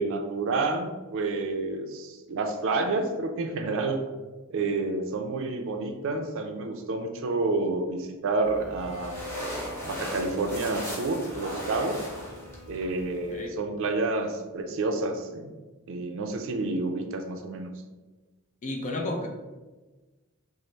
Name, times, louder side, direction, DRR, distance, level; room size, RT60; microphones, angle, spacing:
voice 1, 0.0-4.0 4.5-9.2 9.8-12.1 12.7-15.6 15.9-17.7, right 3 dB, 65° right, 5 dB, 0.4 m, -29 dB
sound 1, 8.4-13.5, equal, 15° left, 0.9 m, -38 dB
Bowed string instrument, 8.4-13.5, equal, 10° right, 1.0 m, -45 dB
voice 2, 18.6-19.4, left 1 dB, 35° left, 1 dB, 0.4 m, -32 dB
3.2 x 2.0 x 3.9 m, 1.2 s
head